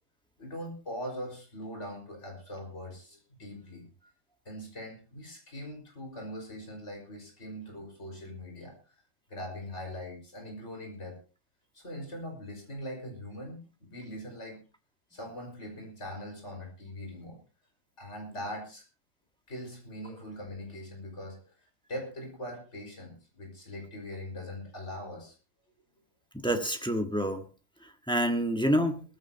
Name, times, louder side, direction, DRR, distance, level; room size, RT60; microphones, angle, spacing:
voice 1, 0.4-3.9 4.5-8.7 9.3-11.2 11.7-14.6 15.1-17.4 18.0-18.8 19.5-21.5 21.9-25.4, equal, 50° left, 2 dB, 5.7 m, -41 dB
voice 2, 26.3-27.4 28.1-29.0, equal, 5° left, 4 dB, 1.4 m, -27 dB
20.0 x 15.0 x 2.9 m, 0.34 s
omnidirectional pair, 1.5 m